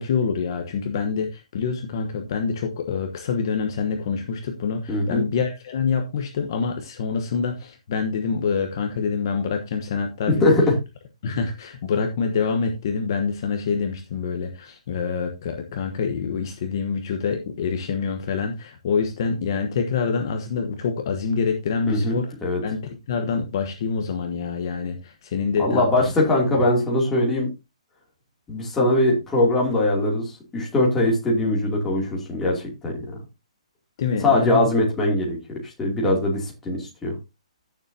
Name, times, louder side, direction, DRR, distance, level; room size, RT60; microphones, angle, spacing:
voice 1, 0.0-10.5 11.2-22.3 22.6-25.8 34.0-34.7, left 5 dB, 35° left, 5 dB, 1.1 m, -26 dB
voice 2, 4.9-5.2 10.3-10.7 21.9-22.6 25.6-27.5 28.5-32.9 34.2-35.4 35.6-37.2, left 1 dB, 5° left, -4 dB, 2.7 m, -21 dB
15.5 x 7.0 x 2.8 m, 0.25 s
hypercardioid pair, 175°, 4 cm